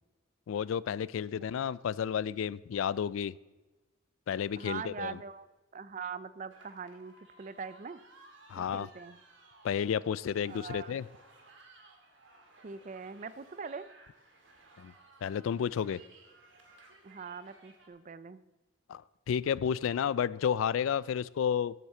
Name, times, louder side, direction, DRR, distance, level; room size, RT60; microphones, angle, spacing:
voice 1, 0.5-3.3 4.3-5.2 8.5-8.9 9.6-11.1 14.8-14.9 15.2-16.0 18.9-19.0 19.3-21.7, left 8 dB, 80° left, 20 dB, 0.3 m, -31 dB
voice 2, 4.6-5.5 5.7-8.0 8.6-9.2 10.5-11.0 12.6-13.9 17.0-18.4, right 5 dB, 40° right, 15 dB, 0.4 m, -42 dB
sound 1, 6.5-17.9, right 2 dB, 65° right, 1.8 m, -59 dB
8.2 x 7.2 x 7.6 m, 1.2 s
head